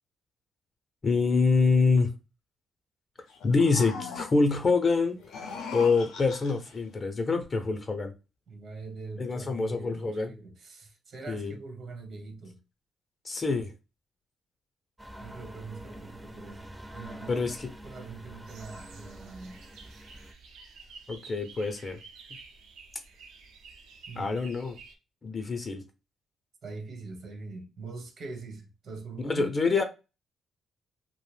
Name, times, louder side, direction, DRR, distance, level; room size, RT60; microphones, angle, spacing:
voice 1, 1.0-2.1 3.4-8.1 9.2-10.3 11.3-11.5 13.2-13.7 17.3-17.6 21.1-22.0 24.2-24.8 25.2-25.8 29.2-29.8, left 4 dB, 35° left, 0.5 m, -26 dB
sound 1, 3.3-4.6 5.2-6.8, left 5 dB, 80° left, 0.5 m, -40 dB
voice 2, 8.5-12.6 15.2-17.5 17.8-19.5 24.1-24.3 26.6-29.5, right 3 dB, 60° right, 0.9 m, -43 dB
sound 2, 15.0-20.3, equal, 10° right, 0.5 m, -46 dB
sound 3, 18.5-24.9, right 4 dB, 80° right, 0.6 m, -51 dB
2.4 x 2.0 x 3.2 m
cardioid pair, 90°, 0 cm